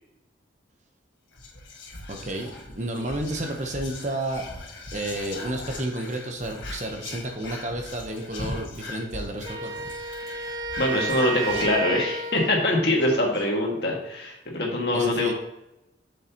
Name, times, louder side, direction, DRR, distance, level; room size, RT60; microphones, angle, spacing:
Whispering, 1.3-12.4 12.7-12.8 13.0-13.4, left 2 dB, 75° left, 1.6 m, -40 dB
voice 1, 2.1-4.4 4.9-9.9 14.9-15.3, right 1 dB, 40° right, 3 dB, 1.0 m, -31 dB
Wind instrument woodwind instrument, 9.4-12.8, right 4 dB, 20° right, 0.4 m, -32 dB
voice 2, 10.3-15.3, left 1 dB, 55° left, -1 dB, 1.9 m, -24 dB
7.6 x 6.6 x 3.0 m, 0.88 s
head